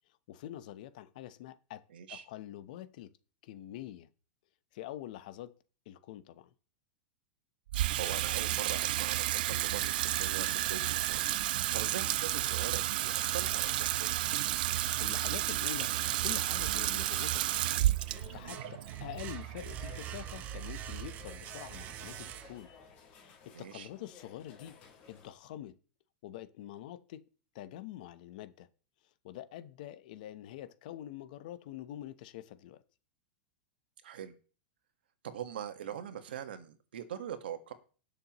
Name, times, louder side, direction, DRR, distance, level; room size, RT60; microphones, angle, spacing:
voice 1, 0.3-1.8 2.1-3.1 3.4-4.1 4.7-5.5 5.9-6.5 15.0-15.9 16.2-17.6 18.3-22.7 23.1-25.7 26.2-27.2 27.5-28.7 29.2-32.8, left 12 dB, 55° left, 0.9 m, -45 dB
voice 2, 1.9-2.2 7.7-11.2 11.5-14.2 23.5-23.9 34.0-34.3 35.2-37.7, right 9 dB, 90° right, 1.5 m, -42 dB
Water tap faucet / Sink (filling or washing), 7.7-20.1, right 14 dB, 65° right, 0.4 m, -32 dB
sound 1, 15.8-25.3, left 6 dB, 35° left, 4.0 m, -56 dB
sound 2, 16.5-17.4 17.8-22.8, right 11 dB, 30° right, 0.7 m, -44 dB
19.0 x 6.8 x 3.0 m
supercardioid pair, 160°, 5 cm